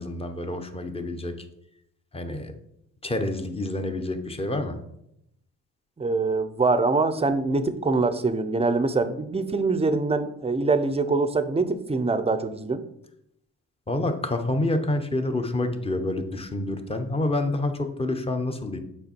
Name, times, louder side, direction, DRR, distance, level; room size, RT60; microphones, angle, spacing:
voice 1, 0.0-1.3 2.1-2.5 3.0-4.8 13.9-18.8, left 2 dB, 20° left, 6 dB, 0.9 m, -28 dB
voice 2, 6.0-12.8, right 3 dB, 20° right, 11 dB, 0.6 m, -24 dB
6.7 x 4.8 x 4.5 m, 0.78 s
cardioid pair, 90°, 30 cm